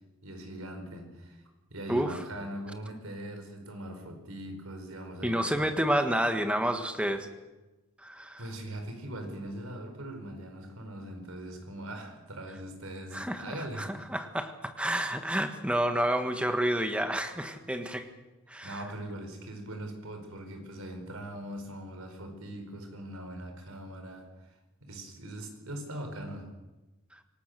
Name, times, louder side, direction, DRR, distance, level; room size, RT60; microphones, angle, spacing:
voice 1, 0.2-1.4 1.7-5.7 8.4-14.1 18.6-24.5 24.8-26.5, right 1 dB, 80° right, 5 dB, 4.8 m, -41 dB
voice 2, 5.2-7.3 8.0-8.4 13.1-13.4 13.8-18.1 18.5-18.8, equal, 5° right, 7 dB, 1.5 m, -29 dB
26.5 x 18.5 x 6.8 m, 1.1 s
head